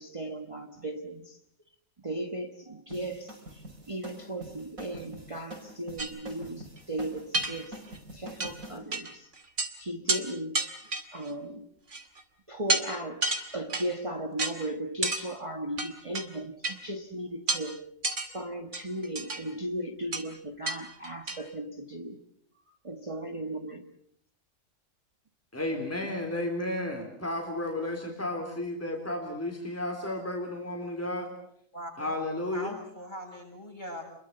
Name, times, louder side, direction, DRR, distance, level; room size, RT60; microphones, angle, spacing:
voice 1, 0.0-1.4 2.0-7.8 8.1-9.3 9.8-10.6 11.1-11.7 12.5-13.2 13.5-17.8 18.3-22.2 22.7-23.9, right 1 dB, 25° right, 4 dB, 1.5 m, -36 dB
sound 1, 2.9-8.8, right 1 dB, 85° right, 5.9 m, -45 dB
sound 2, 6.0-6.1 6.8-6.9 7.3-8.0 8.4-8.5 8.9-9.1 9.4-9.7 10.1-10.2 10.5-11.3 11.9-12.2 12.7-12.9 13.2-13.9 14.4-14.5 15.0-15.2 15.8-16.3 16.6-16.8 17.5-17.6 18.0-18.3 18.7-19.4 20.1-20.2 20.7-20.8 21.0-21.4, right 2 dB, 60° right, 2.6 m, -30 dB
voice 2, 25.5-31.3 32.0-32.8, left 1 dB, 10° left, 1 dB, 3.7 m, -33 dB
voice 3, 31.7-32.2 32.5-34.0, equal, 35° left, 1 dB, 7.6 m, -40 dB
28.5 x 22.5 x 6.8 m, 0.68 s
omnidirectional pair, 1.4 m